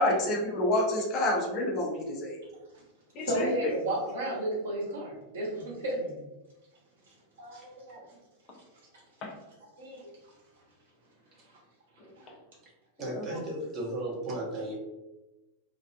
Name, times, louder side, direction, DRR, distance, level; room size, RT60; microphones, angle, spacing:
voice 1, 0.0-2.4 3.1-3.7 9.2-9.3 13.1-13.2, left 1 dB, 35° left, -1 dB, 0.5 m, -28 dB
voice 2, 3.2-6.2 7.4-8.0 9.8-10.1 13.3-13.4, right 1 dB, 65° right, -4 dB, 0.9 m, -33 dB
voice 3, 13.0-14.7, right 1 dB, 30° right, -3 dB, 0.8 m, -35 dB
2.4 x 2.2 x 2.2 m, 1.0 s
figure-of-eight pair, 90°, 0 cm